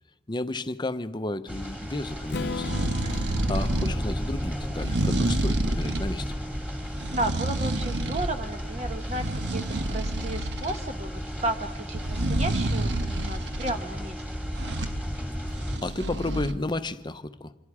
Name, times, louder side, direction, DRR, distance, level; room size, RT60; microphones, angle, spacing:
voice 1, 0.3-2.8 3.1-3.2 3.5-6.3 15.5-17.5, left 2 dB, 25° left, 11 dB, 0.7 m, -32 dB
sound 1, 1.5-15.8, equal, 10° right, 2.1 m, -33 dB
Strum, 2.3-6.2, left 3 dB, 70° left, 0.7 m, -38 dB
sound 2, 2.4-4.0 4.7-6.1 6.8-8.4 8.7-10.8 11.9-13.8 14.5-15.0 15.5-16.5, right 2 dB, 75° right, 1.2 m, -29 dB
voice 2, 3.0-3.4 7.1-14.2, right 1 dB, 40° right, 6 dB, 1.1 m, -33 dB
26.5 x 22.0 x 4.9 m, 1.2 s
head